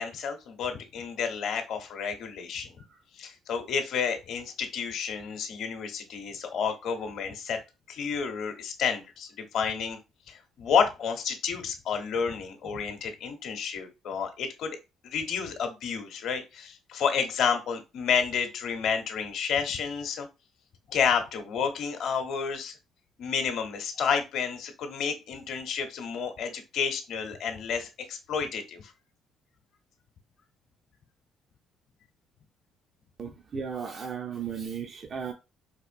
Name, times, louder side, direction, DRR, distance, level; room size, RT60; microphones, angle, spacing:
voice 1, 0.0-2.7 3.2-7.6 7.9-9.3 9.5-10.0 10.3-14.8 15.0-20.3 20.9-22.7 23.2-28.9, left 6 dB, 65° left, 0.7 m, -30 dB
voice 2, 33.2-35.3, right 6 dB, 50° right, 0.5 m, -35 dB
4.2 x 2.5 x 2.5 m
supercardioid pair, 70°, 0 cm